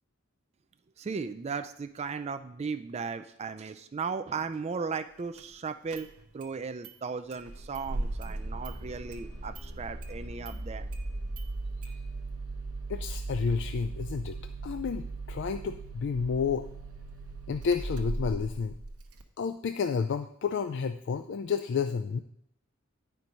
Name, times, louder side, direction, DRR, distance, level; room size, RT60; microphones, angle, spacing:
voice 1, 1.0-6.1 6.3-10.9, right 5 dB, 30° right, 10 dB, 0.3 m, -36 dB
Engine starting, 5.4-5.5 5.9-6.5 6.8-6.9 7.3-19.2, right 2 dB, 85° right, 0.9 m, -38 dB
voice 2, 12.9-14.4 14.6-16.7 17.5-18.7 19.4-22.2, left 5 dB, 55° left, 8 dB, 0.3 m, -30 dB
9.8 x 4.5 x 5.2 m, 0.74 s
head